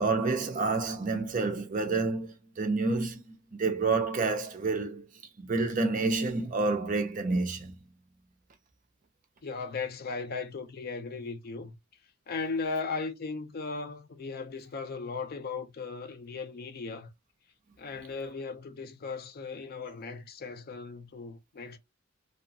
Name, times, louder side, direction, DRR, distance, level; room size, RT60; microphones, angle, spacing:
voice 1, 0.0-5.1 5.4-7.8, right 3 dB, 40° right, 0.5 m, -29 dB
voice 2, 9.4-11.7 12.3-17.1 17.8-21.8, left 4 dB, 45° left, 0.4 m, -37 dB
2.7 x 2.3 x 2.6 m
head